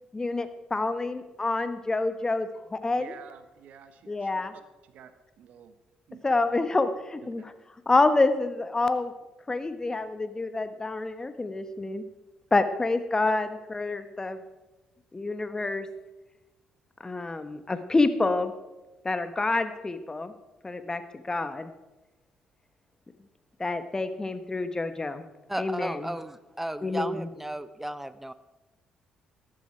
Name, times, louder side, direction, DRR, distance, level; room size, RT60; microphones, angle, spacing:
voice 1, 0.1-3.1 4.1-4.5 6.2-7.5 7.9-9.1 9.5-12.0 12.5-14.4 15.1-15.9 17.0-18.5 19.0-20.3 20.6-21.0 21.3-21.7 23.6-25.2 25.6-26.1 26.8-27.3, left 3 dB, 25° left, 10 dB, 1.3 m, -27 dB
voice 2, 2.9-4.4 4.9-5.1 5.4-5.7 6.1-6.2 7.2-7.3 13.3-13.4, right 8 dB, 70° right, 11 dB, 1.2 m, -49 dB
voice 3, 25.5-28.3, right 1 dB, 10° right, 14 dB, 0.8 m, -34 dB
14.0 x 11.5 x 4.6 m, 1.1 s
hypercardioid pair, 50°, 3 cm